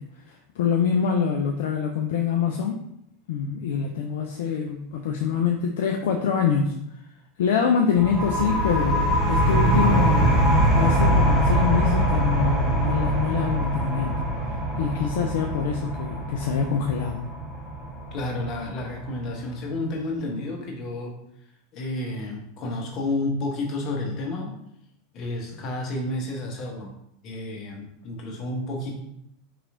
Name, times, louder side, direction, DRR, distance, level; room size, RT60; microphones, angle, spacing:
voice 1, 0.3-2.8 3.3-6.7 7.4-10.4 10.7-14.1 14.8-17.2, left 7 dB, 65° left, 2 dB, 0.3 m, -25 dB
sound 1, 8.0-19.3, right 1 dB, 20° right, 1.0 m, -23 dB
voice 2, 18.1-21.2 21.7-24.5 25.1-26.9 27.2-28.9, left 2 dB, 45° left, 0 dB, 0.9 m, -31 dB
3.8 x 2.9 x 2.5 m, 0.75 s
figure-of-eight pair, 85°, 0 cm